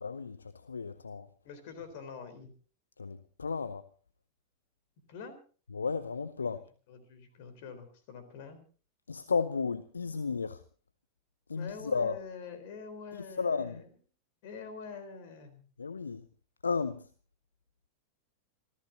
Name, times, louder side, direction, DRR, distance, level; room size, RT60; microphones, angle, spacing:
voice 1, 0.0-1.3 3.0-3.9 5.7-6.6 9.1-10.6 11.5-12.2 13.4-13.8 15.8-16.3 16.6-17.1, left 5 dB, 75° left, 0.7 m, -33 dB
voice 2, 1.4-2.5 5.1-5.4 6.9-8.6 11.5-13.9 14.4-15.6, left 5 dB, 50° left, 4.2 m, -45 dB
27.0 x 14.5 x 2.9 m
figure-of-eight pair, 90°, 0 cm